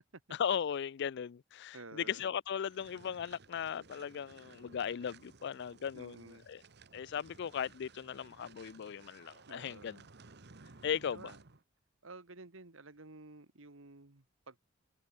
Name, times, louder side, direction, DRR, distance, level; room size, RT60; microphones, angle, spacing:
voice 1, 0.4-6.6 6.9-10.0 10.8-11.3, left 8 dB, 60° left, 0.4 m, -37 dB
voice 2, 1.7-2.3 5.9-6.5 9.4-10.0 11.1-11.4 12.0-14.6, right 3 dB, 75° right, 1.8 m, -52 dB
sound 1, 2.6-11.6, right 4 dB, 55° right, 1.4 m, -58 dB
head